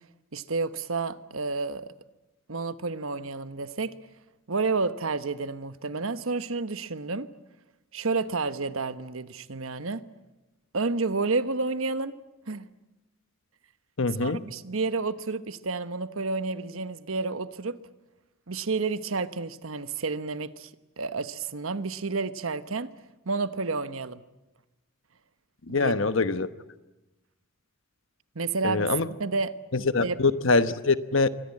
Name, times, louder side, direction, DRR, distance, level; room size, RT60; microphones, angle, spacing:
voice 1, 0.3-1.9 2.5-3.9 4.5-7.3 7.9-10.0 10.7-12.1 12.5-12.7 14.2-17.8 18.5-20.7 21.0-22.9 23.2-24.2 25.8-25.9 28.3-28.9 29.2-29.5 30.0-30.2, right 3 dB, 75° right, 1.1 m, -30 dB
voice 2, 14.0-14.4 25.7-26.5 28.6-29.1 29.9-31.3, left 3 dB, 65° left, 1.1 m, -24 dB
27.5 x 24.0 x 8.7 m
head